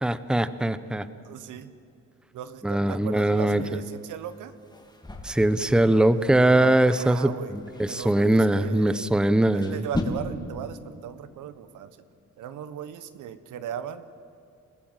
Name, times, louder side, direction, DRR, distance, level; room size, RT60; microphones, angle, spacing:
voice 1, 0.0-1.1 2.6-3.6 5.2-9.8, right 1 dB, 5° right, 13 dB, 0.8 m, -21 dB
voice 2, 1.2-1.7 2.3-4.5 6.9-7.5 7.9-9.1 9.5-12.0 12.4-14.2, right 9 dB, 80° right, 12 dB, 1.2 m, -37 dB
sound 1, 3.2-10.0, left 2 dB, 15° left, 3.4 m, -40 dB
28.0 x 14.5 x 7.4 m, 2.6 s
cardioid pair, 90°, 30 cm